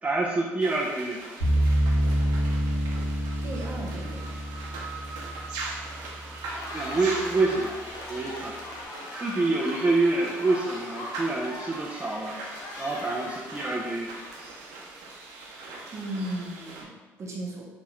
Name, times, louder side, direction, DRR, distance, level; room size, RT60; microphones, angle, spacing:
voice 1, 0.0-1.2 6.7-7.8 8.1-8.6 9.1-12.4 12.8-14.1, right 3 dB, 20° right, -4 dB, 0.4 m, -27 dB
sound 1, 0.6-16.8, right 3 dB, 80° right, 0.6 m, -41 dB
sound 2, 1.4-6.5, equal, 80° left, 1.3 m, -27 dB
voice 2, 3.4-4.2 15.9-17.7, right 1 dB, 45° right, -2 dB, 0.8 m, -36 dB
Cheering, 6.3-14.6, left 2 dB, 65° left, 0.6 m, -40 dB
3.0 x 2.2 x 3.0 m, 1.2 s
supercardioid pair, 70°, 7 cm